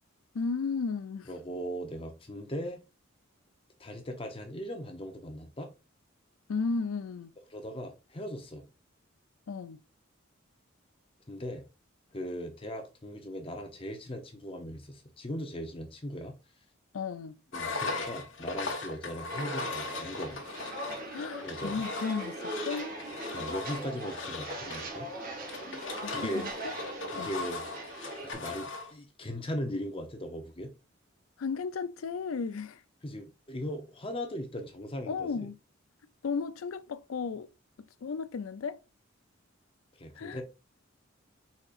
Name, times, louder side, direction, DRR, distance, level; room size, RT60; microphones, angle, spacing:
voice 1, 0.3-1.3 6.5-7.3 9.5-9.8 16.9-17.4 21.1-22.9 26.0-26.7 27.2-27.3 31.4-32.8 35.1-35.5 36.2-37.5 38.0-38.8 40.2-40.4, left 5 dB, 90° left, 0.4 m, -34 dB
voice 2, 1.3-2.8 3.8-5.7 7.5-8.6 11.3-11.6 12.1-16.4 17.5-20.4 21.4-21.8 23.3-25.1 26.1-26.5 27.1-27.6 28.2-30.7 33.0-35.5 40.0-40.4, equal, 25° left, 0.7 m, -38 dB
Engine, 17.5-28.9, left 3 dB, 65° left, 1.2 m, -38 dB
Walk footsteps, 19.3-28.3, right 1 dB, 45° right, 1.2 m, -40 dB
4.9 x 4.2 x 2.5 m
head